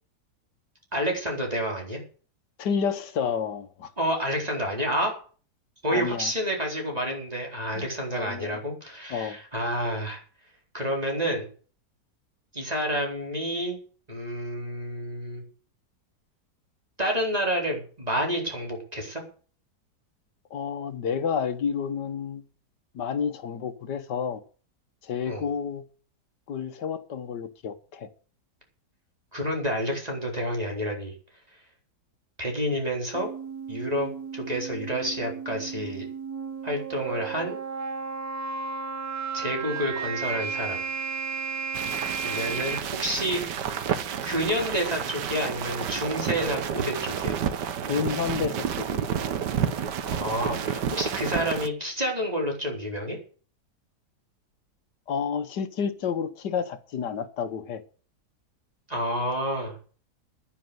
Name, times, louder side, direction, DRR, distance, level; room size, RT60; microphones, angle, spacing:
voice 1, 0.9-2.0 4.0-5.2 5.8-10.2 10.7-11.5 12.5-13.8 14.1-15.4 17.0-19.2 25.3-25.4 29.3-31.1 32.4-33.3 33.7-36.1 36.6-37.6 39.3-40.8 42.2-43.4 44.2-47.4 50.0-53.2 58.9-59.8, equal, 20° right, 4.5 m, -29 dB
voice 2, 2.6-3.9 5.9-6.3 7.7-8.6 9.1-9.4 20.5-22.4 22.9-24.4 25.0-25.8 26.5-28.1 47.9-49.0 55.1-57.8, left 7 dB, 80° left, 1.8 m, -30 dB
sound 1, 33.1-42.8, right 5 dB, 65° right, 1.7 m, -34 dB
sound 2, 41.7-51.7, right 8 dB, 80° right, 1.6 m, -30 dB
10.5 x 10.0 x 8.0 m
omnidirectional pair, 1.8 m